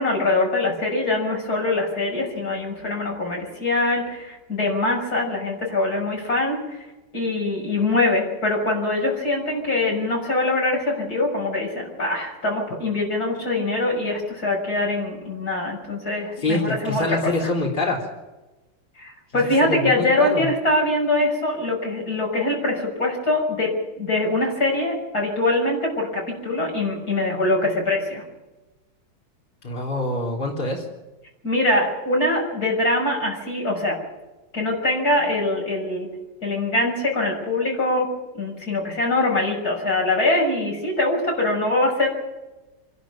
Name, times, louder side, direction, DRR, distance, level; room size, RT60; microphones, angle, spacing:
voice 1, 0.0-6.8 7.1-17.5 19.0-28.2 31.4-34.0 34.5-36.1 36.4-38.1 38.4-42.1, left 2 dB, 55° left, -1 dB, 7.1 m, -23 dB
voice 2, 16.4-18.0 19.6-20.5 29.6-30.8, left 2 dB, 25° left, -1 dB, 3.7 m, -25 dB
26.0 x 12.0 x 9.0 m, 1.1 s
omnidirectional pair, 2.0 m